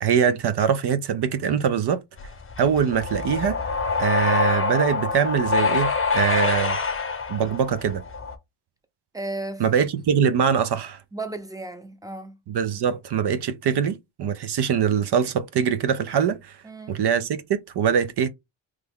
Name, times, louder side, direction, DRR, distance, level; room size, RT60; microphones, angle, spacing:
voice 1, 0.0-2.0 2.6-3.6 4.0-6.8 7.3-8.0 9.6-11.0 12.5-16.6 16.9-18.3, right 7 dB, 55° right, 0.5 m, -23 dB
sound 1, 2.2-8.3, left 4 dB, 25° left, 0.7 m, -25 dB
voice 2, 9.1-9.7 11.1-12.4 16.6-17.0, right 2 dB, 5° right, 0.6 m, -34 dB
3.1 x 2.2 x 3.6 m
cardioid pair, 85°, 50 cm